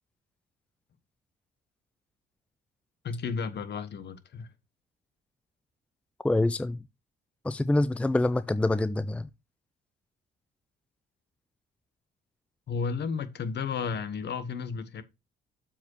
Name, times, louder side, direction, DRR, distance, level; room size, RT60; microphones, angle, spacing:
voice 1, 3.0-4.5 12.7-15.0, left 5 dB, 60° left, 1.3 m, -33 dB
voice 2, 6.2-6.8 7.4-9.3, left 2 dB, 5° left, 0.5 m, -26 dB
7.3 x 5.1 x 4.6 m
cardioid pair, 90°, 20 cm